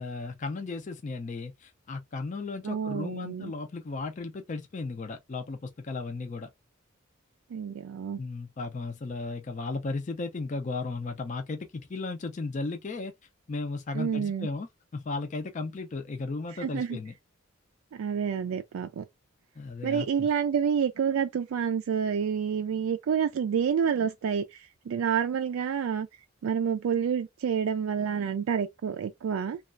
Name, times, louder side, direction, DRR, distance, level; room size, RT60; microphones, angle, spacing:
voice 1, 0.0-6.5 8.2-13.1 13.5-17.1 19.6-20.3, left 3 dB, 35° left, 0.4 m, -35 dB
voice 2, 2.6-3.5 7.5-8.2 13.9-14.5 16.6-17.0 17.9-19.0 19.8-26.1 26.4-29.6, right 7 dB, 80° right, 0.3 m, -28 dB
3.1 x 2.3 x 2.4 m
head